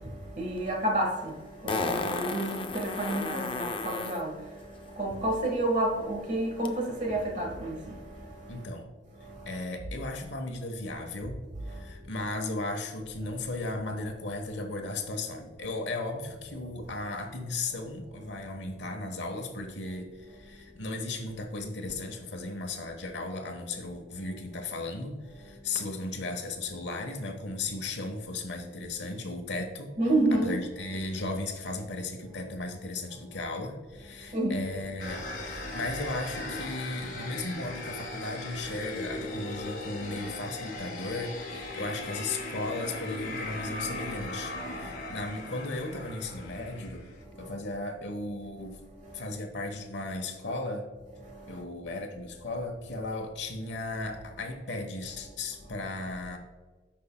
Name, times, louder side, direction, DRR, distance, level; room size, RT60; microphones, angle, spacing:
voice 1, 0.4-1.3 1.6-4.4 5.0-8.0 30.0-30.6 34.3-34.7, right 1 dB, 40° right, 1.3 m, -29 dB
Fart, 0.6-0.7 1.7-4.2 6.7-6.8, left 3 dB, 25° left, 0.5 m, -33 dB
voice 2, 8.5-8.9 9.4-11.4 11.7-29.9 30.3-47.1 47.4-48.8 49.1-50.9 51.5-56.4, left 2 dB, 70° left, 1.1 m, -36 dB
sound 1, 35.0-47.2, left 2 dB, 50° left, 1.8 m, -38 dB
14.5 x 5.5 x 2.2 m
head